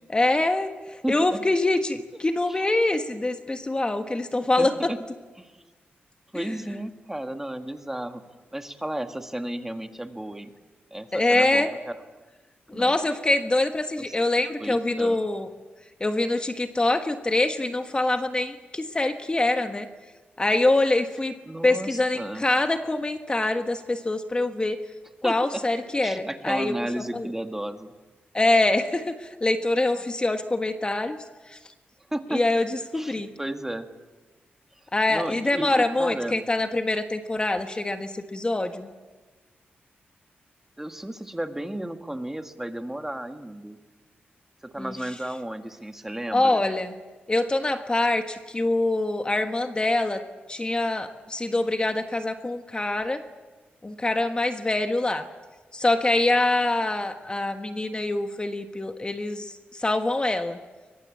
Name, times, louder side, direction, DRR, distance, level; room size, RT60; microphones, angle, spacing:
voice 1, 0.1-4.9 6.3-6.5 11.1-11.7 12.7-15.5 16.0-19.9 20.4-21.3 21.6-24.8 25.2-26.7 27.1-27.3 28.3-31.2 31.5-31.6 32.3-33.3 34.9-38.9 44.8-44.9 46.3-46.9 47.3-50.2 50.5-53.2 53.8-55.3 55.7-60.6, left 2 dB, 25° left, 7 dB, 1.4 m, -24 dB
voice 2, 1.0-1.4 2.1-2.6 4.6-5.0 5.4-5.6 6.3-8.2 8.5-10.5 10.9-12.0 12.7-13.0 14.1-14.2 14.6-15.2 21.5-22.5 25.2-25.6 26.0-27.9 32.1-32.4 32.9-33.9 35.1-36.4 40.8-43.8 44.6-46.7, right 1 dB, 10° right, 6 dB, 1.8 m, -33 dB
23.0 x 21.5 x 8.6 m, 1.3 s
cardioid pair, 85°, 4 cm